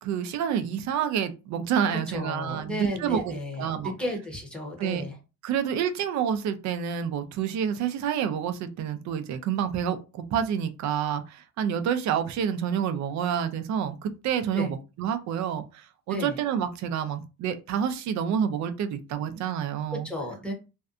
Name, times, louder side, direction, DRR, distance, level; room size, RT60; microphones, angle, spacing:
voice 1, 0.0-3.9 4.8-5.0 5.4-20.1, right 8 dB, 60° right, 0.4 m, -28 dB
voice 2, 1.9-5.1 14.5-14.7 16.1-16.4 19.9-20.5, left 1 dB, 5° left, 0.7 m, -33 dB
2.6 x 2.2 x 2.4 m
cardioid pair, 130°, 33 cm